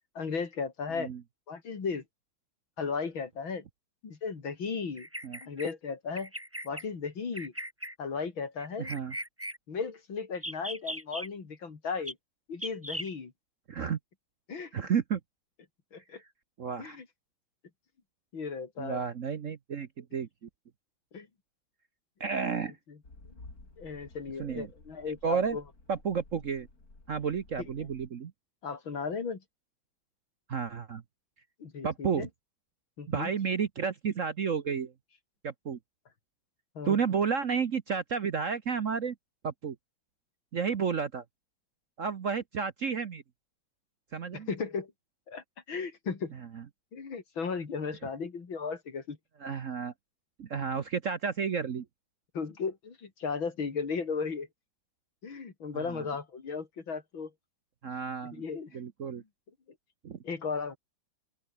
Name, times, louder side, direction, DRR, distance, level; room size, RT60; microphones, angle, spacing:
voice 1, 0.2-1.1 1.5-2.0 2.8-3.6 4.0-5.1 5.4-6.3 6.6-7.5 8.0-8.9 9.7-12.2 12.5-13.3 14.5-14.7 15.9-16.2 16.8-17.1 18.3-19.0 21.1-21.3 22.9-23.0 23.3-23.4 23.8-25.6 27.8-27.9 28.6-29.4 31.6-32.3 33.0-33.3 36.8-37.0 44.3-44.9 45.3-46.3 46.9-49.2 52.3-54.5 55.2-57.3 58.3-58.8 60.2-60.8, left 5 dB, 70° left, 3.7 m, -35 dB
Bird vocalization bird call bird song, 5.0-5.7 6.2-6.8 7.3-7.9 8.6-9.6 10.3-11.3 12.1-12.2 12.6-13.1, equal, 5° right, 5.4 m, -38 dB
voice 2, 8.8-9.1 13.7-14.0 14.7-15.2 16.6-17.0 18.8-20.5 22.2-22.7 24.4-24.7 25.1-25.6 25.9-26.7 27.1-28.3 30.5-31.0 31.8-32.3 33.1-34.9 35.4-35.8 36.8-39.1 39.4-39.8 40.5-41.2 42.0-43.2 44.1-44.5 46.5-46.6 49.4-49.9 50.4-51.8 55.7-56.1 57.8-58.4 58.7-59.2 60.0-60.2, right 6 dB, 50° right, 1.1 m, -31 dB
sound 1, 23.0-28.1, left 2 dB, 45° left, 5.5 m, -54 dB
open air
omnidirectional pair, 2.2 m